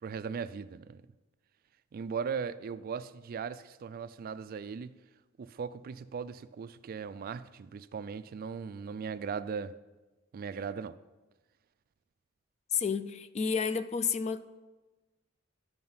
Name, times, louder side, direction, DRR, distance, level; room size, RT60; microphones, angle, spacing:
voice 1, 0.0-1.0 1.9-4.9 5.4-9.7 10.3-11.0, right 6 dB, 45° right, 0.3 m, -38 dB
voice 2, 12.7-14.4, left 6 dB, 35° left, 0.3 m, -30 dB
11.0 x 5.1 x 5.6 m
head